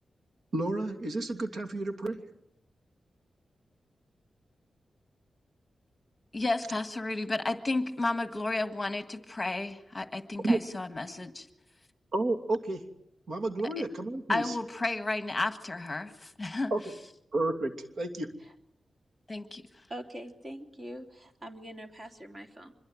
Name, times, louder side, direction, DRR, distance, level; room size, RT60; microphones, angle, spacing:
voice 1, 0.5-2.2 10.4-10.6 12.1-12.8 13.3-14.6 16.7-16.8 17.3-18.3, right 2 dB, 65° right, 4 dB, 2.8 m, -30 dB
voice 2, 6.3-11.5 14.3-16.7 19.3-19.6, left 2 dB, 20° left, 8 dB, 1.7 m, -32 dB
voice 3, 19.9-22.7, equal, 30° right, 4 dB, 3.3 m, -43 dB
25.5 x 22.5 x 9.2 m, 0.78 s
wide cardioid pair, 120°, 0 cm